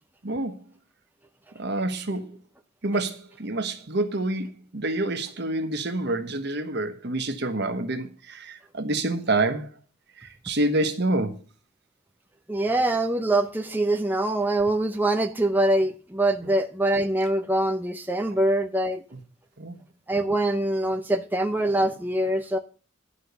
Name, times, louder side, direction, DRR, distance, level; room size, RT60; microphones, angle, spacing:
voice 1, 0.2-0.5 1.6-2.3 2.8-4.5 4.7-9.7 10.4-11.4 19.6-19.8, right 2 dB, 60° right, 1.3 m, -27 dB
voice 2, 12.5-19.0 20.1-22.6, right 1 dB, 10° right, 0.6 m, -24 dB
11.0 x 5.6 x 6.8 m
head